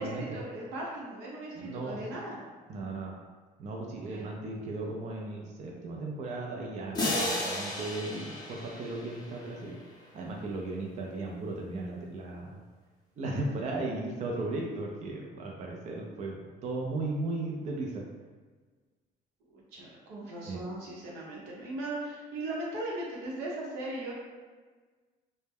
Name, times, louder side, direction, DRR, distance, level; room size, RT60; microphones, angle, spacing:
voice 1, 0.0-2.4 4.1-4.5 19.5-24.2, right 1 dB, 90° right, -4 dB, 0.8 m, -38 dB
voice 2, 1.6-2.0 2.7-3.1 3.6-9.8 10.1-12.6 13.2-18.1 20.5-20.6, right 2 dB, 45° right, -1 dB, 0.4 m, -36 dB
sound 1, 6.9-9.8, left 1 dB, 25° left, 0.6 m, -34 dB
2.1 x 2.1 x 3.3 m, 1.4 s
cardioid pair, 110°, 17 cm